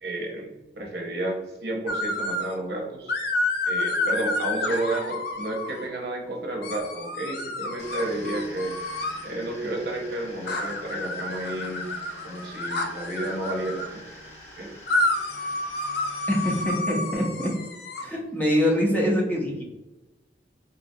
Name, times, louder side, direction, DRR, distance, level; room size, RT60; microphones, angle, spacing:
voice 1, 0.0-3.2 3.7-8.8 9.2-11.9 12.2-14.0 14.6-14.7, right 1 dB, 70° right, 0 dB, 0.7 m, -31 dB
sound 1, 1.9-2.6 3.1-5.9 6.6-9.3 10.5-13.9 14.9-18.0, left 2 dB, 65° left, 0.4 m, -29 dB
sound 2, 7.8-16.6, left 1 dB, 40° left, 0.9 m, -45 dB
voice 2, 16.3-17.5 18.0-19.6, equal, 10° left, -3 dB, 0.5 m, -24 dB
3.8 x 2.2 x 2.6 m, 1.0 s
head